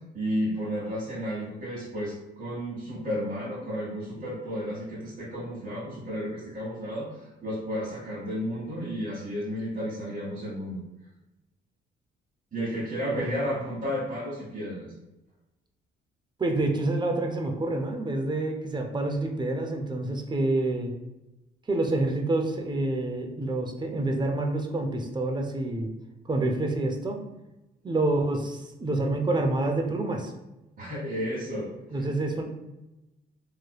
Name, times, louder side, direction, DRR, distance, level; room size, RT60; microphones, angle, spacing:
voice 1, 0.1-10.8 12.5-14.9 30.8-31.7 32.0-32.1, equal, 45° right, -8 dB, 1.3 m, -32 dB
voice 2, 16.4-20.9 21.7-25.9 26.3-27.2 27.8-30.3 31.9-32.4, right 2 dB, 20° right, 3 dB, 0.5 m, -27 dB
3.1 x 2.9 x 2.3 m, 0.97 s
cardioid pair, 90°, 20 cm